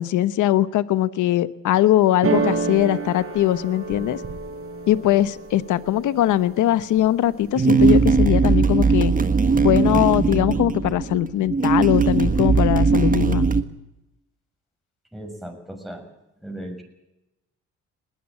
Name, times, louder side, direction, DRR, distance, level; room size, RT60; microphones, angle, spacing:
voice 1, 0.0-4.2 4.9-9.1 9.6-13.5, left 13 dB, 80° left, 15 dB, 1.0 m, -21 dB
sound 1, 2.2-6.1 6.6-7.2 7.5-8.2, right 4 dB, 50° right, 5.9 m, -28 dB
sound 2, 7.6-13.6, right 4 dB, 25° right, 1.6 m, -19 dB
voice 2, 15.1-16.1 16.4-16.8, right 1 dB, ahead, 3 dB, 6.7 m, -36 dB
21.0 x 19.0 x 8.8 m, 0.91 s
cardioid pair, 90°, 30 cm